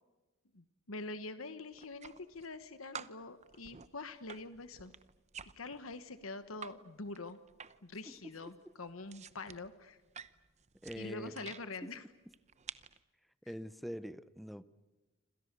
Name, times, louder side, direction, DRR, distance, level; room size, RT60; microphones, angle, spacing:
voice 1, 0.5-4.9 5.4-7.4 7.8-10.0 11.0-12.0, left 3 dB, 80° left, 1.3 m, -45 dB
sound 1, 1.7-2.6 2.9-6.8 7.1-8.0 8.2-11.6 12.3-13.0, right 7 dB, 35° right, 0.9 m, -50 dB
voice 2, 10.8-11.5 11.8-11.9 13.5-14.6, equal, ahead, 0.8 m, -44 dB
27.5 x 27.0 x 6.8 m
head